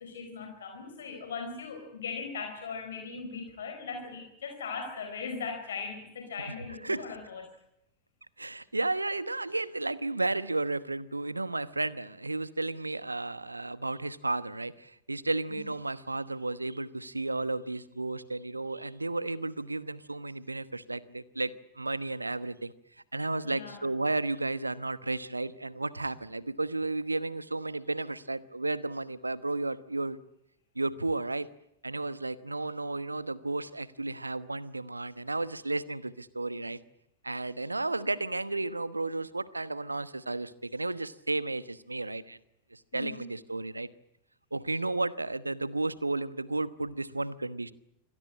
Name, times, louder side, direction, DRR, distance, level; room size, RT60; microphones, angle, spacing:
voice 1, 0.0-7.5 15.5-15.6 23.4-23.8 42.9-43.3, left 5 dB, 65° left, 5 dB, 4.4 m, -39 dB
voice 2, 8.4-22.7 23.1-30.2 30.7-31.5 31.8-36.8 37.2-42.4 42.7-43.9 44.5-47.7, right 2 dB, 80° right, 17 dB, 1.1 m, -33 dB
25.5 x 17.5 x 8.7 m, 0.82 s
figure-of-eight pair, 90°, 0 cm